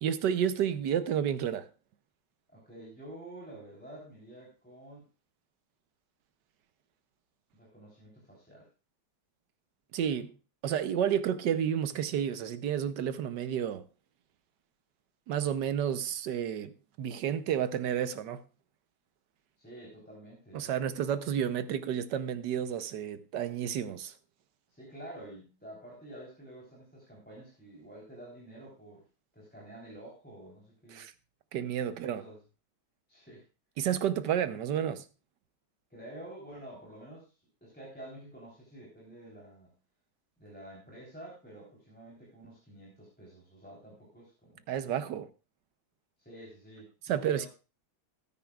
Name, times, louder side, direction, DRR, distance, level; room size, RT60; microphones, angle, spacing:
voice 1, 0.0-1.7 9.9-10.3 10.6-13.8 15.3-16.7 17.0-18.4 20.5-24.1 30.9-31.1 31.5-32.2 33.8-35.1 44.7-45.3 47.1-47.5, right 9 dB, 80° right, 1.4 m, -31 dB
voice 2, 2.5-5.1 7.5-8.7 19.6-20.7 24.7-29.1 29.3-31.0 31.9-32.4 33.1-33.4 35.9-39.8 40.4-44.6 46.2-47.5, right 1 dB, 5° left, 3.5 m, -49 dB
18.0 x 9.7 x 2.4 m
omnidirectional pair, 1.8 m